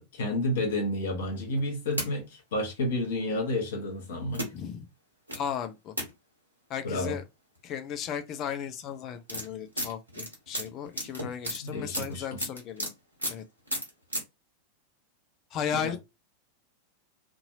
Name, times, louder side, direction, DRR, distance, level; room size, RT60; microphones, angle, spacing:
voice 1, 0.0-4.5 6.8-7.2 11.6-12.4 15.7-16.0, left 1 dB, 60° left, 1.2 m, -31 dB
sound 1, 1.6-2.1 3.0-3.1 4.3-4.5 5.3-5.4 6.0-6.1 7.6-7.7 7.9-8.2 8.9-12.9 13.2-13.4 13.7-14.2, equal, 80° right, 1.2 m, -33 dB
voice 2, 4.5-4.9 5.4-5.9 6.7-7.2 7.6-12.9 13.3-13.4 15.5-16.0, left 8 dB, 35° left, 0.5 m, -35 dB
2.7 x 2.6 x 2.7 m
figure-of-eight pair, 90°, 0 cm